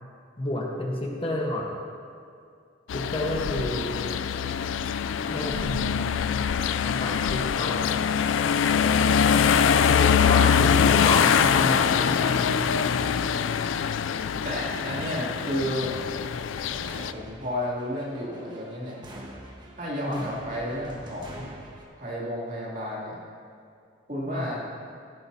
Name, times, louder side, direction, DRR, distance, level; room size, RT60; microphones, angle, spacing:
voice 1, 0.4-1.8 2.9-4.0 5.3-6.4 6.8-7.8 9.8-12.6 20.0-20.3 24.3-24.5, left 1 dB, 30° left, -1 dB, 1.2 m, -30 dB
sound 1, 2.9-17.1, left 7 dB, 90° left, 0.4 m, -23 dB
voice 2, 14.4-15.9 17.1-19.0 19.8-21.5 22.0-23.2 24.1-24.6, equal, 45° right, -5 dB, 2.8 m, -32 dB
sound 2, 15.3-21.8, right 1 dB, 25° right, 1.3 m, -45 dB
15.5 x 12.5 x 2.8 m, 2.3 s
head